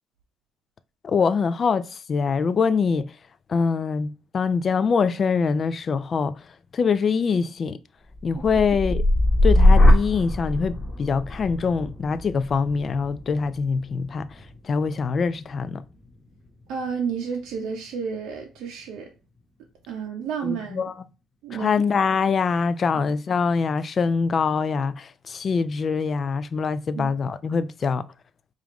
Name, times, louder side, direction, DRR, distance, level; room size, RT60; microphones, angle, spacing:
voice 1, 1.0-3.1 3.5-6.4 6.7-7.8 8.2-9.0 9.4-14.3 14.6-15.8 20.4-20.9 21.5-28.0, left 5 dB, 40° left, 0.3 m, -24 dB
sound 1, 8.1-16.2 16.6-17.1, left 1 dB, 20° left, 1.1 m, -22 dB
voice 2, 16.7-19.1 19.9-20.9 21.4-21.7 26.9-27.1, right 6 dB, 80° right, 0.6 m, -31 dB
4.9 x 2.4 x 3.0 m
cardioid pair, 120°, 0 cm